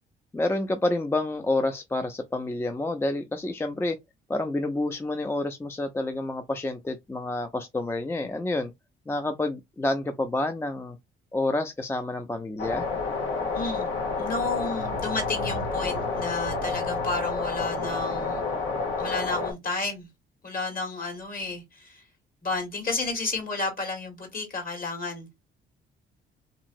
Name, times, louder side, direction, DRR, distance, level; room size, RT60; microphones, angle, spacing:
voice 1, 0.3-4.0 4.3-8.7 9.1-11.0 11.3-12.9, left 2 dB, 10° left, 0.4 m, -28 dB
sound 1, 12.6-19.5, left 4 dB, 80° left, 1.2 m, -29 dB
voice 2, 13.5-13.9 14.2-18.4 19.0-20.1 20.4-22.0 22.4-25.3, left 3 dB, 45° left, 1.7 m, -31 dB
2.9 x 2.8 x 2.5 m
cardioid pair, 90°, 20 cm